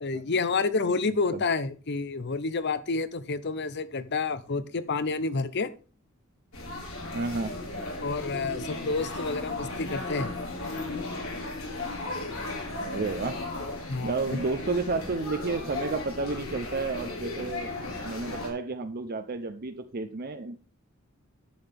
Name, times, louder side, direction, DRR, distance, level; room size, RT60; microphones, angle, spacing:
voice 1, 0.0-5.7 8.0-10.3 13.9-14.4, left 4 dB, 55° left, 14 dB, 0.8 m, -29 dB
sound 1, 6.5-18.5, left 2 dB, 85° left, 4.1 m, -36 dB
voice 2, 7.1-7.6 12.8-13.5 14.0-17.7 18.0-20.6, right 3 dB, 45° right, 8 dB, 0.7 m, -31 dB
10.5 x 7.8 x 3.5 m, 0.35 s
head